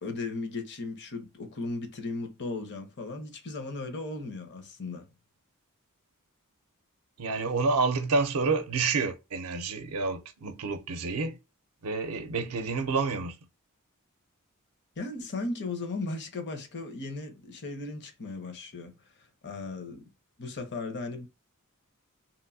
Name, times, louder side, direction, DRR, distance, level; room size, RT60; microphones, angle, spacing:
voice 1, 0.0-5.1 15.0-20.1 20.4-21.3, left 3 dB, 50° left, 0.8 m, -36 dB
voice 2, 7.2-11.4 11.8-13.4, right 4 dB, 70° right, 0.5 m, -29 dB
3.0 x 2.6 x 2.6 m
head